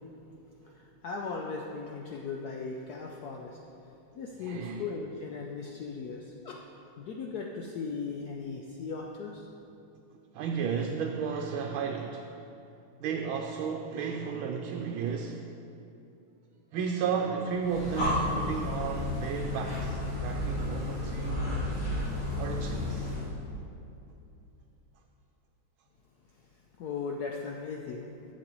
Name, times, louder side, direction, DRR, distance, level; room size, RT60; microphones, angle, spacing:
voice 1, 0.6-3.6 4.1-6.6 7.0-9.4 26.3-26.4 26.8-28.1, left 4 dB, 75° left, 0 dB, 0.9 m, -38 dB
voice 2, 4.4-4.8 10.3-12.3 13.0-15.5 16.7-21.4 22.4-23.1, right 6 dB, 80° right, 2 dB, 1.4 m, -33 dB
Breathing, 17.6-23.3, left 1 dB, 40° left, 2.3 m, -32 dB
11.5 x 7.8 x 3.0 m, 2.7 s
omnidirectional pair, 2.2 m